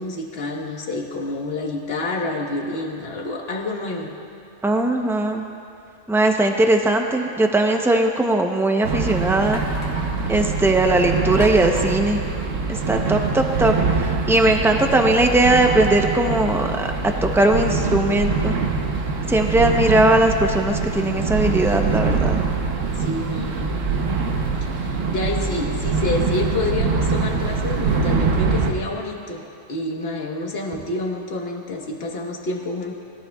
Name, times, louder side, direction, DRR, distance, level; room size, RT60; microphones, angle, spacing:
voice 1, 0.0-4.1 23.0-23.8 24.6-29.4 29.7-32.9, left 2 dB, 55° left, 0 dB, 1.5 m, -28 dB
voice 2, 4.6-5.4 6.1-9.6 10.3-12.2 12.7-16.9 17.2-18.6 19.3-22.4, right 2 dB, 5° right, 3 dB, 0.4 m, -19 dB
sound 1, 8.8-28.7, right 4 dB, 85° right, 1.2 m, -24 dB
sound 2, 9.5-10.3 11.4-12.9, equal, 30° left, 1.5 m, -36 dB
20.5 x 14.0 x 2.3 m, 2.5 s
omnidirectional pair, 1.3 m